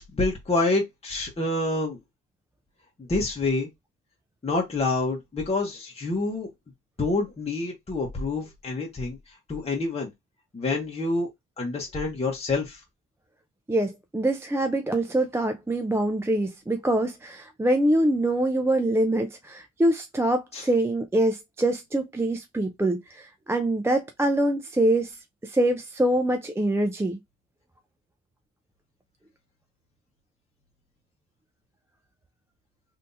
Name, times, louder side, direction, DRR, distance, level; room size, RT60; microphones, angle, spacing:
voice 1, 0.0-2.0 3.0-3.7 4.4-6.5 7.0-10.1 10.5-11.3 11.6-12.8 20.5-20.7, left 2 dB, 20° left, 1.1 m, -27 dB
voice 2, 13.7-27.2, right 1 dB, 10° right, 0.5 m, -24 dB
3.4 x 2.7 x 2.7 m
cardioid pair, 90°, 30 cm